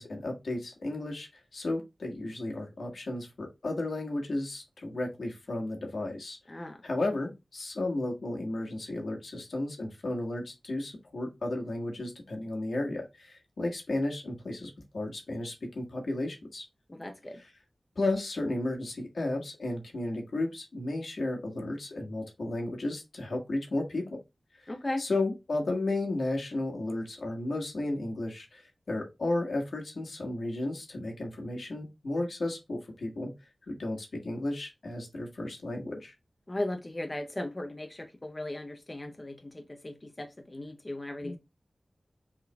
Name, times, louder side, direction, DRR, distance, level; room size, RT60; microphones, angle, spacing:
voice 1, 0.0-16.6 17.3-17.5 17.9-24.0 24.6-24.7 25.0-33.3 33.7-36.1 41.2-41.4, left 2 dB, 85° left, 1.5 m, -33 dB
voice 2, 16.9-17.4 24.7-25.0 36.5-41.4, left 1 dB, 30° left, 0.6 m, -37 dB
5.8 x 3.6 x 2.2 m
wide cardioid pair, 95°, 0 cm